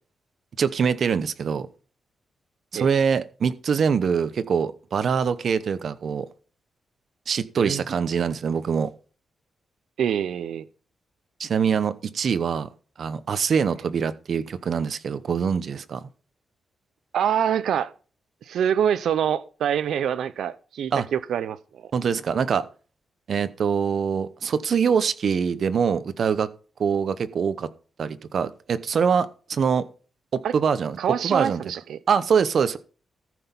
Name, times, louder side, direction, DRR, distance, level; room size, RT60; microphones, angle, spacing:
voice 1, 0.6-1.7 2.7-6.3 7.3-8.9 11.4-12.7 13.0-16.0 20.9-21.1 21.9-22.6 23.3-26.5 26.8-27.7 28.0-29.8 30.3-31.0 31.2-31.6 32.1-32.8, right 6 dB, 55° right, 0.9 m, -24 dB
voice 2, 10.0-10.7 17.1-17.9 18.5-21.9 30.4-30.5 31.0-32.0, right 9 dB, 80° right, 0.5 m, -25 dB
14.0 x 6.0 x 5.4 m
wide cardioid pair, 135°, 0 cm